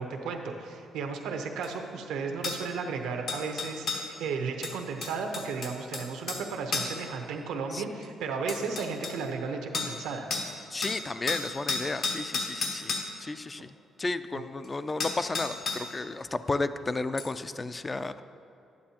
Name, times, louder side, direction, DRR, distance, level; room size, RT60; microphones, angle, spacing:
voice 1, 0.0-10.3 14.3-14.4, right 5 dB, 90° right, 4 dB, 0.8 m, -34 dB
sound 1, 1.6-1.7 2.4-2.6 3.3-4.1 4.6-6.4 6.7-7.0 8.0-8.1 8.5-9.2 9.7-10.0 10.3-10.5 10.8-13.1 14.6-14.7 15.0-15.9 17.2-17.3, left 4 dB, 70° left, 1.2 m, -32 dB
voice 2, 10.7-13.7 14.0-18.2, left 3 dB, 25° left, 12 dB, 0.3 m, -33 dB
11.5 x 9.6 x 2.9 m, 2.6 s
cardioid pair, 90°, 0 cm